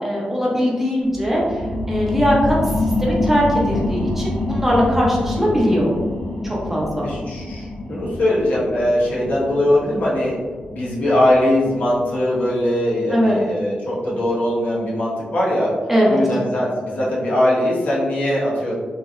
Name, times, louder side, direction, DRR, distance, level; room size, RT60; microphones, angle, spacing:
voice 1, 0.0-1.6 1.9-2.5 2.8-5.9 6.4-7.0 13.1-13.4 15.9-16.2, equal, 10° right, -4 dB, 0.6 m, -20 dB
sound 1, 1.0-12.2 12.6-12.7, left 2 dB, 85° left, 1.3 m, -26 dB
voice 2, 7.0-10.4 10.7-15.7 16.0-18.7, left 1 dB, 65° left, -6 dB, 0.9 m, -20 dB
3.0 x 2.6 x 2.4 m, 1.5 s
wide cardioid pair, 125°, 3 cm